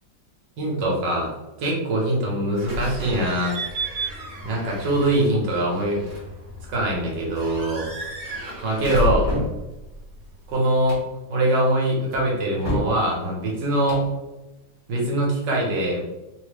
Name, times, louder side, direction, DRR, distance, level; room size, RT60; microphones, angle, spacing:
voice 1, 0.6-1.3 1.6-3.6 4.4-6.0 6.7-7.9 8.6-9.3 10.5-11.0 11.3-14.0 14.9-16.0, right 1 dB, 70° right, -2 dB, 1.6 m, -23 dB
Slam / Squeak / Alarm, 2.6-10.5, equal, 50° right, 1.4 m, -32 dB
sound 1, 9.0-9.6 10.7-11.1 12.1-13.0 13.7-14.1, equal, 25° left, 0.8 m, -29 dB
3.8 x 2.1 x 3.3 m, 0.99 s
omnidirectional pair, 2.0 m